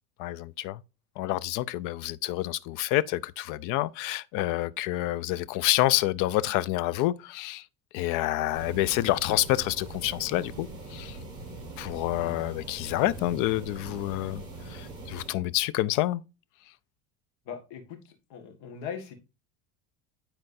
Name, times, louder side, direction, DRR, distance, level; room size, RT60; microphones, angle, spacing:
voice 1, 0.2-0.8 1.2-7.6 7.9-11.2 11.8-14.4 14.7-16.2, left 15 dB, 55° left, 0.5 m, -28 dB
sound 1, 8.5-15.3, right 2 dB, 10° right, 2.8 m, -42 dB
voice 2, 17.5-18.0 18.3-19.1, left 7 dB, 80° left, 1.6 m, -39 dB
9.7 x 4.4 x 2.6 m
cardioid pair, 145°, 38 cm